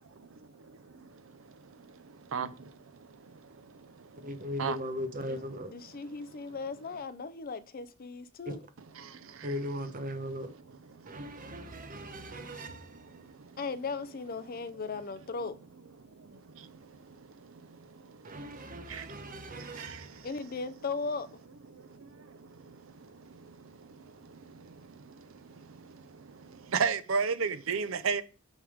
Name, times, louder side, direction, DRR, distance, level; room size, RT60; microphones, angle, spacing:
voice 1, 4.2-5.7 8.5-8.6 9.4-10.5 11.1-13.1 18.2-20.2, equal, 40° right, 1.0 m, -38 dB
voice 2, 5.7-8.6 13.6-15.6 20.2-21.3, left 4 dB, 45° left, 0.5 m, -37 dB
voice 3, 26.7-28.2, right 5 dB, 70° right, 0.6 m, -29 dB
8.8 x 3.5 x 5.0 m
head